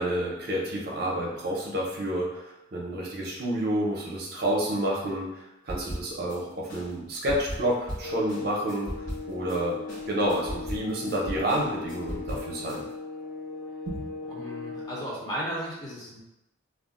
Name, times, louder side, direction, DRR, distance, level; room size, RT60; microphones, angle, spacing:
voice 1, 0.0-2.4 2.7-5.3 5.6-8.9 9.3-9.8 10.1-12.8 13.9-14.0, right 1 dB, 50° right, -3 dB, 0.6 m, -29 dB
sound 1, 5.7-6.4 6.7-9.6 9.9-12.8, equal, 40° left, 0.9 m, -38 dB
sound 2, 8.0-15.0, left 4 dB, 75° left, 1.1 m, -38 dB
voice 2, 14.2-16.2, equal, 20° left, -6 dB, 0.6 m, -35 dB
2.3 x 2.1 x 3.6 m, 0.94 s
head